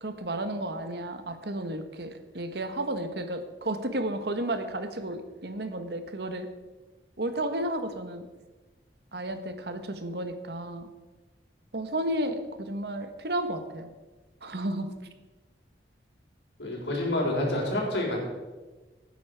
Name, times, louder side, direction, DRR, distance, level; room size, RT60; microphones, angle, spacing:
voice 1, 0.0-6.5 7.2-8.3 9.1-10.9 11.7-13.9 14.4-14.9, right 1 dB, 65° right, 8 dB, 1.3 m, -32 dB
voice 2, 16.6-18.2, left 1 dB, 80° left, -1 dB, 4.2 m, -28 dB
16.5 x 9.5 x 4.7 m, 1.2 s
head